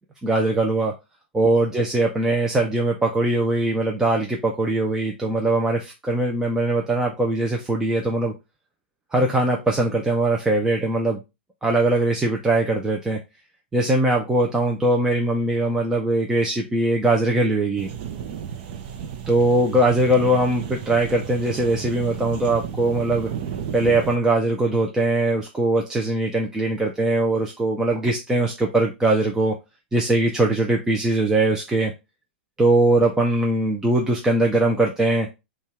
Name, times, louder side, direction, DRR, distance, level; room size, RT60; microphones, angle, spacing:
voice 1, 0.2-0.9 1.3-8.3 9.1-11.2 11.6-13.2 13.7-17.9 19.3-23.3 23.7-29.5 29.9-31.9 32.6-35.3, right 2 dB, 10° right, 0 dB, 0.5 m, -21 dB
sound 1, 17.8-24.2, right 8 dB, 45° right, 0.7 m, -33 dB
5.3 x 2.4 x 3.4 m, 0.24 s
hypercardioid pair, 140°, 6 cm